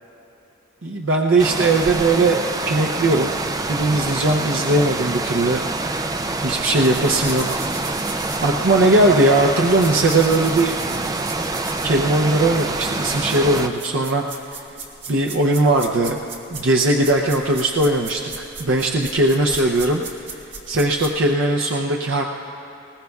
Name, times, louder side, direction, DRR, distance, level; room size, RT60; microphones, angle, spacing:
voice 1, 0.8-3.4 3.7-5.6 5.9-6.1 6.4-7.6 8.4-10.7 11.8-14.2 15.1-16.2 16.5-20.0 20.7-22.2, right 2 dB, 80° right, 0 dB, 0.7 m, -19 dB
sound 1, 1.4-13.7, right 2 dB, 20° right, 0.4 m, -26 dB
sound 2, 6.8-21.2, right 4 dB, 65° right, 1.7 m, -37 dB
20.5 x 19.0 x 2.4 m, 2.9 s
head